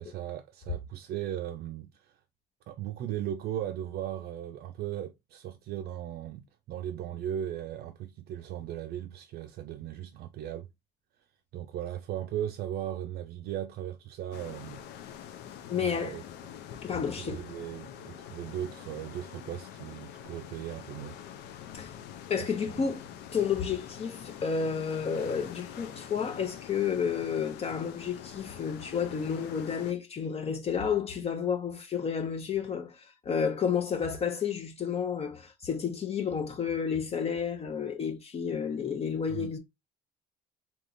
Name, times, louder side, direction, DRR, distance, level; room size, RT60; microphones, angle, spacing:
voice 1, 0.0-2.2 2.7-10.7 11.5-14.8 15.7-16.2 16.9-21.2 22.4-22.9 39.3-39.6, right 11 dB, 70° right, 0.5 m, -37 dB
sound 1, 14.3-29.9, left 9 dB, 85° left, 0.6 m, -45 dB
voice 2, 15.7-16.2 16.8-17.4 21.7-21.9 22.3-23.1 23.3-39.6, left 7 dB, 35° left, 0.7 m, -31 dB
3.5 x 2.9 x 2.5 m
cardioid pair, 110°, 17 cm